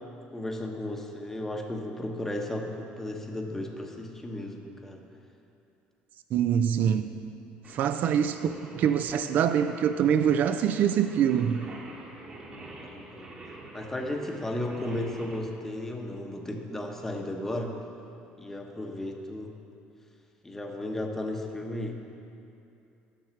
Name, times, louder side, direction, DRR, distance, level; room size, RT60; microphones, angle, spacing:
voice 1, 0.3-5.0 12.9-13.3 13.7-17.8 18.4-19.5 20.4-21.9, left 1 dB, 10° left, 2 dB, 0.8 m, -34 dB
voice 2, 6.3-7.1 7.7-11.7, right 8 dB, 55° right, 9 dB, 0.3 m, -24 dB
Singing, 7.6-15.4, right 2 dB, 30° right, 1.3 m, -47 dB
7.4 x 6.4 x 5.8 m, 2.7 s
cardioid pair, 120°, 3 cm